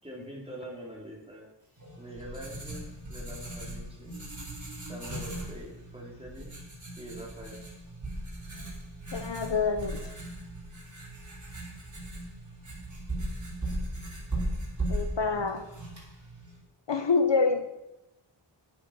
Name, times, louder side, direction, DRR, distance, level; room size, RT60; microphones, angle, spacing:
voice 1, 0.0-1.5 2.0-4.2 4.9-6.5 7.0-7.6 15.3-15.4, equal, 10° right, -3 dB, 4.6 m, -44 dB
Writing, 1.8-16.6, right 1 dB, 40° right, 5.1 m, -38 dB
voice 2, 9.1-10.0 14.9-15.6 16.9-17.7, left 4 dB, 65° left, 8 dB, 1.0 m, -26 dB
10.5 x 9.8 x 6.1 m, 0.92 s
wide cardioid pair, 55°, 46 cm